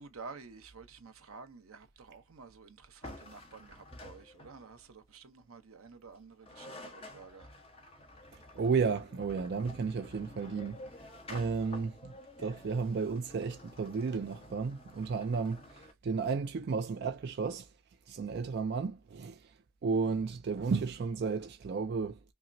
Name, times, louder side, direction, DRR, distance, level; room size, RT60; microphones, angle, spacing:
voice 1, 0.0-7.5, right 4 dB, 80° right, 0.8 m, -51 dB
sound 1, 3.0-4.8 6.2-6.3 6.4-15.9, left 1 dB, 25° left, 0.9 m, -50 dB
voice 2, 8.6-10.8 11.3-12.1 12.4-15.6 16.0-17.7 18.1-19.4 19.8-22.2, right 5 dB, 50° right, 0.3 m, -33 dB
5.6 x 2.0 x 2.5 m
head